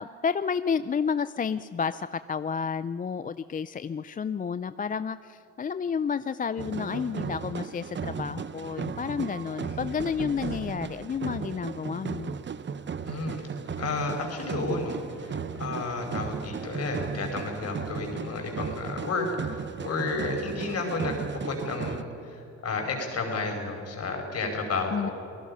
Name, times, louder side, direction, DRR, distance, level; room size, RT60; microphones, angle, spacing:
voice 1, 0.0-12.4 24.9-25.1, left 6 dB, 30° left, 14 dB, 0.4 m, -31 dB
sound 1, 6.6-22.0, right 6 dB, 40° right, 0.9 m, -36 dB
sound 2, 9.6-11.2, left 4 dB, 85° left, 3.6 m, -47 dB
voice 2, 13.0-13.4 13.8-25.1, left 3 dB, 55° left, 3 dB, 5.2 m, -32 dB
29.0 x 18.5 x 5.6 m, 2.8 s
cardioid pair, 90°, 30 cm